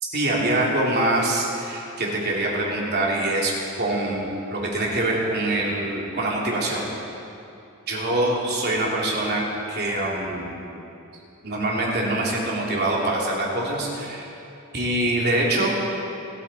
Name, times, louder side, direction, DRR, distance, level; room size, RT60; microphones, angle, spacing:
voice 1, 0.0-3.5 3.8-6.9 7.9-9.4 9.7-10.5 11.4-14.3 14.7-15.7, right 1 dB, 50° right, -3 dB, 3.0 m, -24 dB
27.5 x 9.3 x 4.3 m, 2.8 s
head